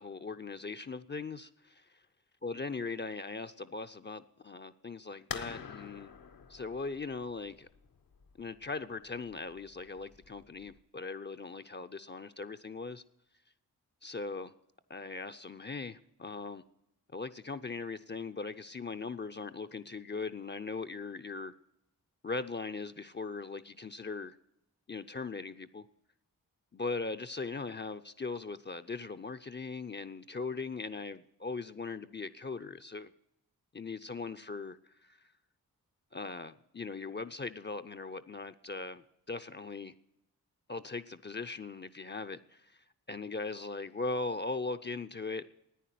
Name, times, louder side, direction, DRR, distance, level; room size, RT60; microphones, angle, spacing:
voice 1, 0.0-1.8 2.4-6.1 6.5-7.7 8.4-13.0 14.0-14.5 14.9-16.6 17.1-21.5 22.2-24.4 24.9-25.8 26.7-33.1 33.7-35.2 36.1-39.9 40.7-42.8 43.1-45.4, left 3 dB, 30° left, 10 dB, 0.6 m, -39 dB
sound 1, 5.3-10.8, left 6 dB, 65° left, 1.0 m, -47 dB
10.0 x 9.5 x 9.3 m, 0.84 s
cardioid pair, 45°, 37 cm